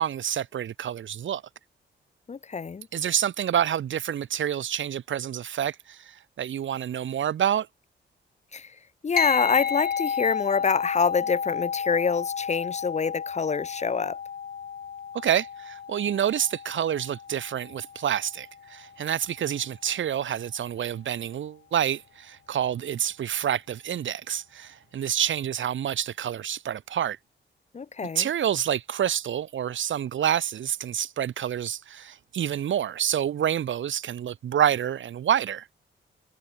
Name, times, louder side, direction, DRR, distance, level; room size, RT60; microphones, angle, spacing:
voice 1, 0.0-1.4 2.9-7.7 15.2-27.2 28.1-35.7, right 10 dB, 80° right, 3.2 m, -28 dB
voice 2, 2.3-2.9 8.5-8.7 9.0-14.2 27.7-28.3, left 5 dB, 35° left, 6.2 m, -26 dB
sound 1, 9.2-18.9, left 7 dB, 55° left, 7.9 m, -32 dB
wide cardioid pair, 175°, 20 cm